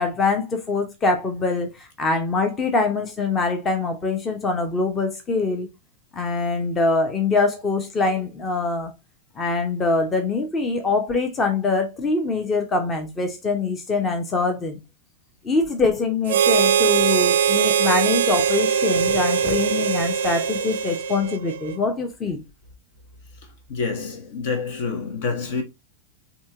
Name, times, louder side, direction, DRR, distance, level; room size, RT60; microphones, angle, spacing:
voice 1, 0.0-5.7 6.1-8.9 9.4-14.8 15.4-22.4, left 3 dB, 20° left, 0.9 m, -24 dB
Harmonica, 16.3-21.8, right 8 dB, 60° right, 0.4 m, -21 dB
voice 2, 23.7-25.6, left 4 dB, 55° left, 1.1 m, -27 dB
4.2 x 2.9 x 3.5 m
figure-of-eight pair, 90°, 0 cm